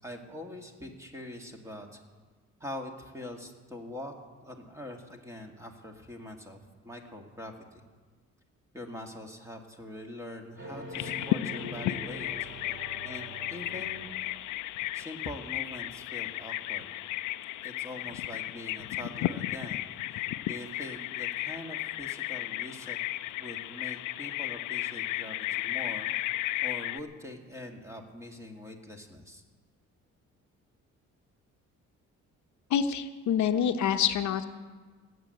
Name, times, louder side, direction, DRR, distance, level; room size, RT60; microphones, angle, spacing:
voice 1, 0.0-2.0 2.6-4.1 4.4-7.8 8.7-12.8 13.0-14.1 14.9-16.9 17.6-23.0 23.4-26.1 26.6-29.4, left 1 dB, 10° right, 2 dB, 2.2 m, -43 dB
sound 1, 10.6-14.7, right 1 dB, 40° right, 4.3 m, -44 dB
Bird vocalization bird call bird song, 10.9-27.0, left 15 dB, 85° left, 0.5 m, -34 dB
voice 2, 32.7-34.4, left 8 dB, 70° left, 8 dB, 0.9 m, -26 dB
17.5 x 8.3 x 7.9 m, 1.4 s
cardioid pair, 90°, 30 cm